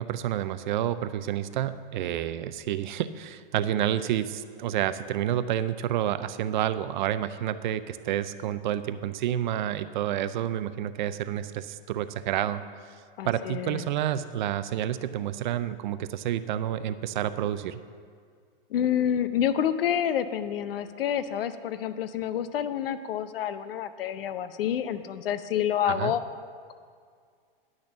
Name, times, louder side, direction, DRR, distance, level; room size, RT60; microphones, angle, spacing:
voice 1, 0.0-12.6 13.2-17.8 25.9-26.1, right 11 dB, 55° right, 13 dB, 0.5 m, -29 dB
voice 2, 13.2-13.9 18.7-26.2, left 9 dB, 75° left, 12 dB, 0.7 m, -28 dB
10.5 x 6.4 x 7.1 m, 2.1 s
hypercardioid pair, 150°, 29 cm